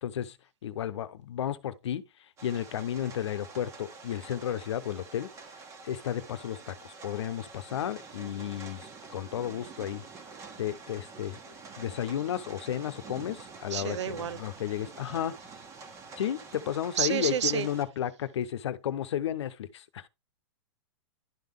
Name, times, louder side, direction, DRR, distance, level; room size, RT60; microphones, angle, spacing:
voice 1, 0.0-0.4 0.6-2.0 2.4-5.3 5.8-10.0 10.6-11.4 11.7-15.4 16.2-20.1, left 10 dB, 85° left, 0.9 m, -33 dB
sound 1, 2.4-17.8, right 4 dB, 20° right, 1.4 m, -47 dB
voice 2, 13.7-14.4 17.0-17.7, right 10 dB, 90° right, 0.6 m, -29 dB
11.0 x 3.8 x 3.6 m
hypercardioid pair, 150°, 14 cm